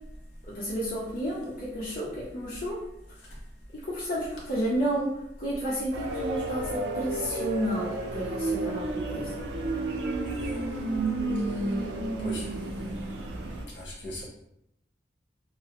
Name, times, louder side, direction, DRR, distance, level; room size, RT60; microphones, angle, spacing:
voice 1, 0.5-2.8 3.8-5.1 5.4-9.3, equal, 50° left, -7 dB, 0.5 m, -31 dB
sound 1, 5.9-13.7, right 2 dB, 90° right, 0.4 m, -31 dB
voice 2, 10.3-10.6 12.2-12.5 13.7-14.2, left 1 dB, 75° left, -4 dB, 0.9 m, -38 dB
2.6 x 2.0 x 2.8 m, 0.81 s
head